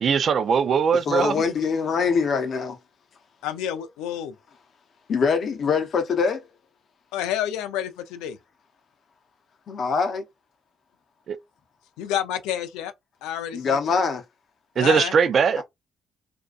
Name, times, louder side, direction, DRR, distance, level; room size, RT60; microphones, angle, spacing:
voice 1, 0.0-1.4 11.3-11.4 14.8-15.6, right 6 dB, 60° right, 0.3 m, -20 dB
voice 2, 1.1-2.8 5.1-6.4 9.7-10.2 13.5-14.2 15.6-15.7, left 5 dB, 60° left, 0.7 m, -23 dB
voice 3, 3.4-4.4 7.1-8.4 12.0-12.9 13.2-13.8 14.8-15.1, left 10 dB, 85° left, 0.4 m, -29 dB
2.6 x 2.2 x 2.3 m
hypercardioid pair, 50°, 0 cm